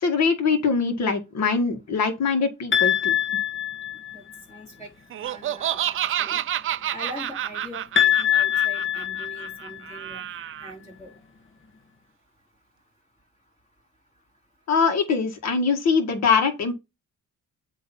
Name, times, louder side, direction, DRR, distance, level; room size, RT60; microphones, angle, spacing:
voice 1, 0.0-3.1 14.7-16.7, left 5 dB, 60° left, 1.8 m, -22 dB
sound 1, 2.7-4.4 8.0-10.0, left 11 dB, 40° left, 1.6 m, -23 dB
voice 2, 4.1-4.9 5.2-6.4 6.9-10.3 10.6-11.1, equal, 25° left, 4.5 m, -42 dB
Laughter, 5.1-10.7, right 11 dB, 45° right, 0.4 m, -29 dB
7.9 x 3.2 x 5.4 m
cardioid pair, 90°, 30 cm